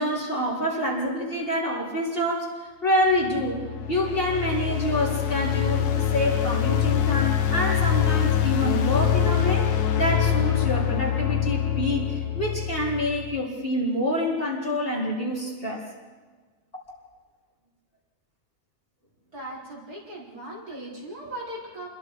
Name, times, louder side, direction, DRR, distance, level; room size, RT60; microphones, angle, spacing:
voice 1, 0.0-15.8, left 1 dB, 35° left, -4 dB, 4.2 m, -27 dB
sound 1, 3.2-13.4, left 9 dB, 70° left, 1.5 m, -24 dB
voice 2, 19.3-21.9, right 1 dB, 65° right, -6 dB, 5.8 m, -38 dB
29.5 x 22.0 x 4.8 m, 1.4 s
omnidirectional pair, 1.7 m